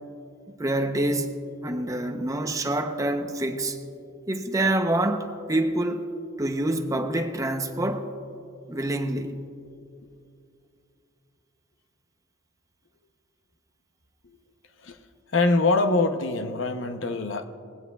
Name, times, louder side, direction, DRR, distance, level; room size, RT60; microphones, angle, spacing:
voice 1, 0.6-1.4 1.6-3.8 4.3-6.1 6.4-8.1 8.7-9.4, right 1 dB, 15° right, 6 dB, 0.7 m, -26 dB
voice 2, 15.3-17.5, left 3 dB, 70° left, 8 dB, 0.7 m, -24 dB
19.5 x 16.0 x 2.3 m, 2.5 s
head